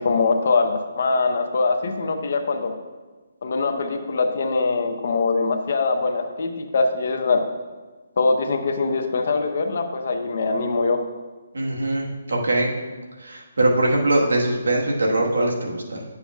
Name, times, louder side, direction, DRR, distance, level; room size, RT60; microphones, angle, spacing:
voice 1, 0.0-2.7 3.4-7.4 8.2-11.0, left 3 dB, 60° left, 5 dB, 0.8 m, -22 dB
voice 2, 11.5-12.7 13.2-16.0, right 2 dB, 90° right, 0 dB, 1.4 m, -22 dB
10.0 x 6.8 x 2.4 m, 1.3 s
hypercardioid pair, 155°, 0 cm